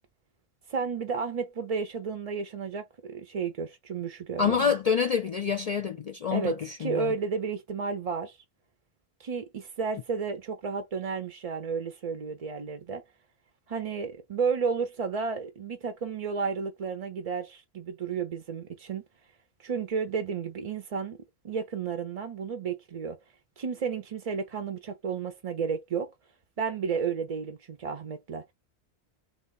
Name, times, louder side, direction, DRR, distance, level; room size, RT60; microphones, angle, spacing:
voice 1, 0.7-4.7 6.3-8.4 9.2-13.0 13.7-19.0 19.6-21.2 21.4-23.2 23.6-26.1 26.6-28.5, right 5 dB, 45° right, 0.5 m, -32 dB
voice 2, 4.4-7.1, left 6 dB, 50° left, 0.5 m, -27 dB
3.2 x 2.3 x 3.9 m
omnidirectional pair, 1.1 m